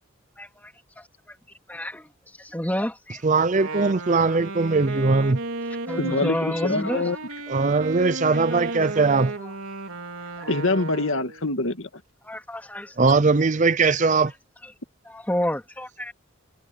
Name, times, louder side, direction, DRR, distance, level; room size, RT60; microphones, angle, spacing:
voice 1, 0.4-1.0 1.7-2.1 2.4-3.2 5.9-7.2 8.3-8.7 9.4-9.5 10.4-10.5 12.2-12.9 14.6-14.7 15.0-16.1, equal, 10° left, 3.2 m, -30 dB
voice 2, 3.2-5.4 7.5-9.3 13.0-14.3, right 4 dB, 35° right, 0.5 m, -20 dB
Wind instrument woodwind instrument, 3.5-11.4, right 2 dB, 75° right, 3.8 m, -34 dB
voice 3, 6.0-7.2 10.5-11.9, left 2 dB, 70° left, 2.0 m, -25 dB
head